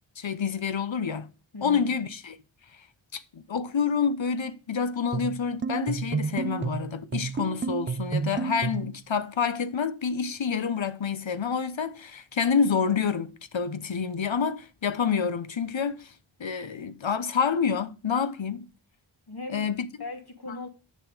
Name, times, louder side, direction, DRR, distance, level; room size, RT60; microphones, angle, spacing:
voice 1, 0.2-1.3 1.6-2.4 3.1-16.1 16.4-18.7 19.5-19.9, left 6 dB, 65° left, 0.9 m, -28 dB
voice 2, 1.5-1.9 19.3-19.7 20.0-20.7, left 3 dB, 50° left, 2.4 m, -38 dB
sound 1, 5.1-9.0, right 5 dB, 25° right, 0.4 m, -31 dB
8.5 x 6.6 x 4.9 m
wide cardioid pair, 50°, 49 cm